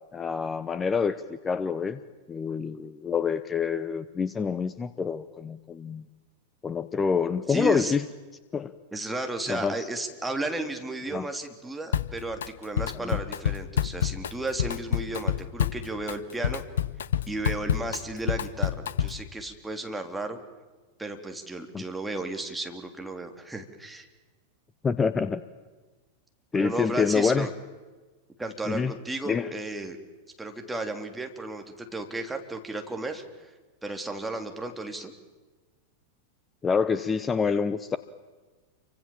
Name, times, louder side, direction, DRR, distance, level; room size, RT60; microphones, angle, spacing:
voice 1, 0.1-2.0 2.3-6.1 6.6-8.0 8.5-8.7 9.5-9.9 11.1-11.3 13.0-13.2 21.7-21.8 24.8-25.4 26.5-27.5 28.7-28.9 29.3-29.5 36.6-38.0, left 5 dB, 20° left, 14 dB, 0.9 m, -27 dB
voice 2, 7.5-7.9 8.9-16.6 17.3-20.4 21.0-24.1 26.5-27.5 28.4-30.0 30.4-33.5 33.8-35.1, right 2 dB, 5° right, 4 dB, 3.4 m, -34 dB
Drum kit, 11.9-12.5 12.8-19.3, left 9 dB, 65° left, 1.0 m, -28 dB
29.0 x 24.5 x 7.4 m, 1.3 s
figure-of-eight pair, 90°, 0 cm